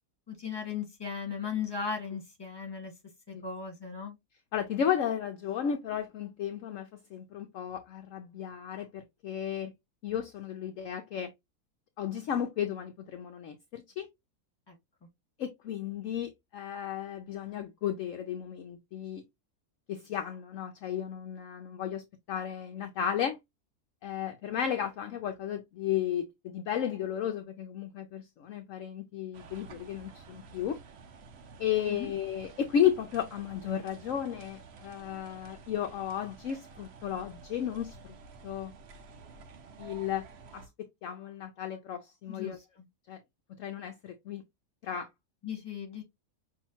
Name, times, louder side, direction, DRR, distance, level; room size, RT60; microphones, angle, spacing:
voice 1, 0.3-2.9 3.3-4.1 14.7-14.8 31.9-32.1 42.3-42.5 45.4-46.0, left 6 dB, 15° left, 1.5 m, -37 dB
voice 2, 4.5-9.7 10.0-11.3 12.0-14.1 15.4-19.2 19.9-23.4 24.0-30.8 31.6-38.1 38.4-38.7 39.8-40.2 40.5-42.6 43.1-43.2 43.6-44.4 44.8-45.1, left 9 dB, 65° left, 0.9 m, -34 dB
sound 1, 29.3-40.7, right 4 dB, 55° right, 0.8 m, -51 dB
5.6 x 2.8 x 2.8 m
omnidirectional pair, 1.6 m